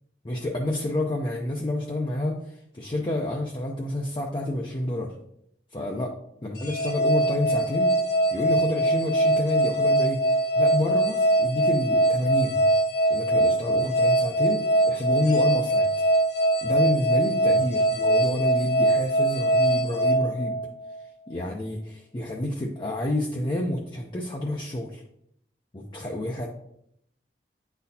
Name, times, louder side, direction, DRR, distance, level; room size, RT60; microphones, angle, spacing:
voice 1, 0.2-5.1 5.7-6.2 6.4-7.9 8.3-10.2 10.6-12.6 13.1-15.9 16.6-20.6 21.3-25.0 25.7-26.5, left 1 dB, 25° left, -1 dB, 0.6 m, -29 dB
sound 1, 6.6-21.0, right 1 dB, 70° left, 1.6 m, -22 dB
9.6 x 4.1 x 2.7 m, 0.74 s
head